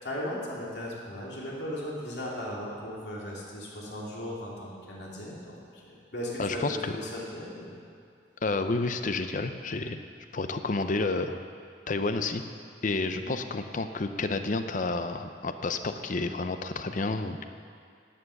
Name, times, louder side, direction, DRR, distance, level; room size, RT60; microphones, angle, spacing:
voice 1, 0.0-7.7 13.1-13.4, left 1 dB, 70° left, -5 dB, 2.8 m, -37 dB
voice 2, 6.4-6.9 8.4-10.0 10.3-11.4 11.9-12.4 12.8-17.4, left 3 dB, 45° left, 9 dB, 0.6 m, -30 dB
12.0 x 8.6 x 6.5 m, 2.3 s
head